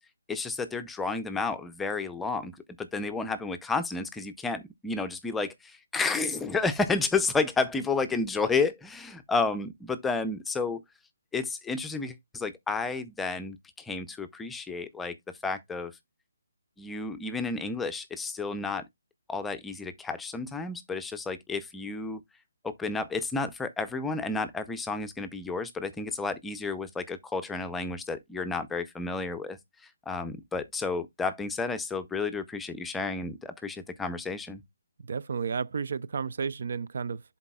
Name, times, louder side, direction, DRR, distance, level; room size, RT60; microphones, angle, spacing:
voice 1, 0.3-2.5 2.8-10.8 11.3-15.2 15.4-15.9 16.8-18.8 19.3-22.2 22.6-29.6 30.1-34.6, left 4 dB, 5° left, 0.5 m, -31 dB
voice 2, 35.1-37.2, right 6 dB, 60° right, 0.4 m, -32 dB
11.0 x 4.1 x 2.3 m
hypercardioid pair, 160°, 0 cm